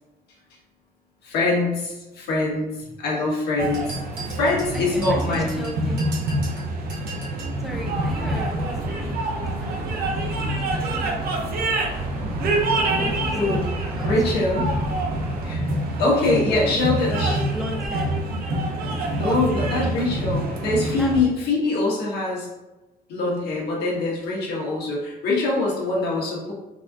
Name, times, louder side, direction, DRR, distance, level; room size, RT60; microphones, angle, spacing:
voice 1, 1.2-4.0 4.2-5.6 13.3-13.7 14.0-14.6 15.4-15.6 16.0-17.4 19.2-22.5 23.1-26.5, left 2 dB, 75° left, -4 dB, 1.3 m, -23 dB
sound 1, 3.6-21.2, right 1 dB, 60° right, 0.7 m, -26 dB
sound 2, 3.7-7.6, right 4 dB, 80° right, 1.2 m, -39 dB
voice 2, 4.4-6.2 7.6-9.2 10.3-11.1 12.8-14.5 16.1-18.1 21.0-21.3, equal, ahead, 0 dB, 0.5 m, -36 dB
sound 3, 7.7-15.5, equal, 40° right, 1.3 m, -35 dB
4.0 x 2.5 x 2.5 m, 1.1 s
cardioid pair, 110°, 17 cm